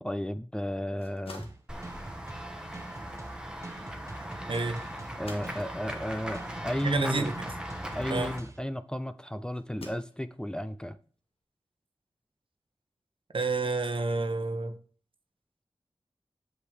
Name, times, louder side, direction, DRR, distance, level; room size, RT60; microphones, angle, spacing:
voice 1, 0.0-1.5 5.2-7.3 7.9-11.0, equal, 10° left, 0.5 m, -34 dB
sound 1, 0.9-8.9 9.5-10.6, left 2 dB, 80° left, 1.6 m, -53 dB
sound 2, 1.4-8.6, right 2 dB, 30° right, 1.0 m, -46 dB
Run / Walk footsteps / Bell, 1.7-8.4, equal, 10° right, 1.3 m, -39 dB
voice 2, 4.5-4.8 6.8-7.5 8.1-8.4 13.3-14.8, right 3 dB, 65° right, 1.0 m, -30 dB
8.0 x 6.4 x 3.5 m
wide cardioid pair, 85°, 10 cm